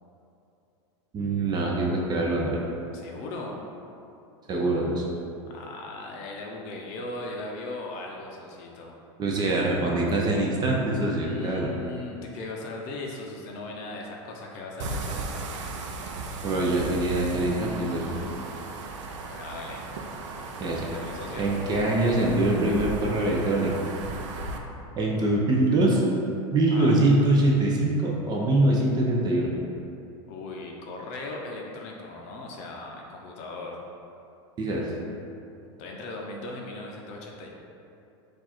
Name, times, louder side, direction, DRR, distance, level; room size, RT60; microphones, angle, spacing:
voice 1, 1.1-2.6 4.5-5.0 9.2-11.7 16.4-18.1 20.6-20.8 21.4-23.7 25.0-26.0 26.5-29.5 34.6-34.8, right 2 dB, 25° right, -2 dB, 0.6 m, -23 dB
voice 2, 2.9-3.5 5.5-8.9 11.2-15.6 18.1-18.5 19.3-19.8 20.6-21.5 26.7-27.0 30.3-33.8 35.8-37.5, left 2 dB, 50° left, 0 dB, 0.6 m, -38 dB
sound 1, 14.8-24.6, right 3 dB, 80° right, 0.5 m, -36 dB
4.5 x 2.5 x 4.3 m, 2.7 s
supercardioid pair, 130°, 15 cm